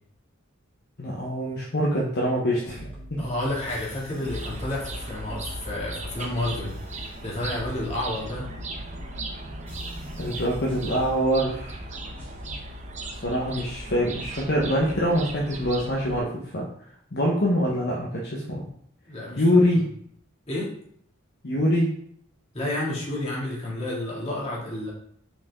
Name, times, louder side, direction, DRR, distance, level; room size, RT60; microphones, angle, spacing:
voice 1, 1.0-3.2 10.2-11.8 13.1-16.7 17.1-18.7 19.4-19.9 21.4-21.9, equal, 55° left, -4 dB, 1.0 m, -24 dB
sound 1, 2.6-12.6, equal, 10° left, 2.4 m, -44 dB
voice 2, 3.2-8.5 19.1-19.9 20.5-20.7 22.5-24.9, left 1 dB, 30° left, -5 dB, 2.2 m, -31 dB
sound 2, 4.2-16.2, right 1 dB, 35° right, 0.7 m, -37 dB
5.9 x 4.6 x 3.5 m, 0.65 s
head